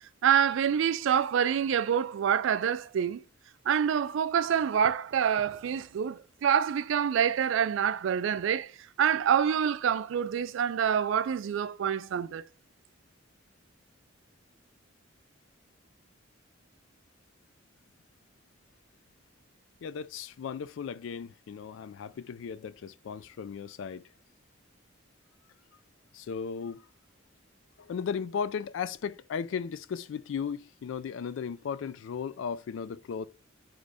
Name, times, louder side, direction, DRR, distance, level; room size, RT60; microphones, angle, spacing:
voice 1, 0.2-3.2 3.7-8.7 9.0-12.4, right 8 dB, 65° right, 0.3 m, -26 dB
voice 2, 19.8-24.1 26.1-26.8 27.8-33.3, left 6 dB, 65° left, 0.3 m, -36 dB
3.9 x 3.1 x 3.4 m
head